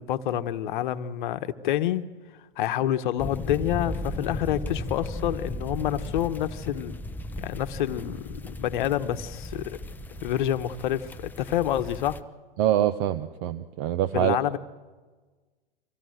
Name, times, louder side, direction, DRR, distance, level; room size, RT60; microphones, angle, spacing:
voice 1, 0.0-2.1 2.6-6.9 7.4-9.8 10.2-12.2 14.1-14.6, left 12 dB, 55° left, 10 dB, 1.2 m, -28 dB
sound 1, 3.2-12.2, left 1 dB, 5° left, 0.7 m, -36 dB
voice 2, 12.6-14.4, right 12 dB, 40° right, 13 dB, 0.8 m, -24 dB
25.0 x 16.5 x 7.9 m, 1.3 s
hypercardioid pair, 115°, 29 cm